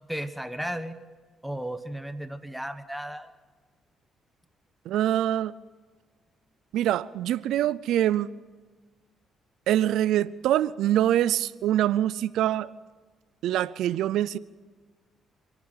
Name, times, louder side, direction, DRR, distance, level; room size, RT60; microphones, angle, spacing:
voice 1, 0.1-1.0 1.4-3.3, right 1 dB, 5° right, 1.2 m, -34 dB
voice 2, 4.9-5.5 6.7-8.3 9.7-12.7 13.4-14.4, right 12 dB, 85° right, 0.5 m, -24 dB
27.0 x 11.5 x 9.1 m
cardioid pair, 90°, 0 cm